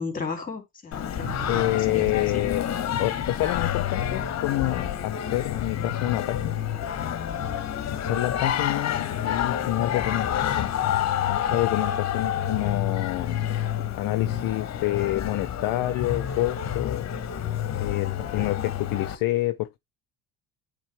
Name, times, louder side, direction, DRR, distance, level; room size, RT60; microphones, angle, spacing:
voice 1, 0.0-2.4 7.7-7.8 18.2-18.6, left 4 dB, 20° left, 2.9 m, -35 dB
Singing, 0.9-19.2, left 10 dB, 40° left, 1.0 m, -28 dB
Thunder / Rain, 1.2-6.2, right 8 dB, 75° right, 1.6 m, -45 dB
voice 2, 1.5-2.7 3.0-6.6 7.6-7.7 8.0-10.7 11.3-13.4 14.0-17.1 17.8-19.8, left 16 dB, 55° left, 0.5 m, -28 dB
8.8 x 3.7 x 3.3 m
supercardioid pair, 105°, 41 cm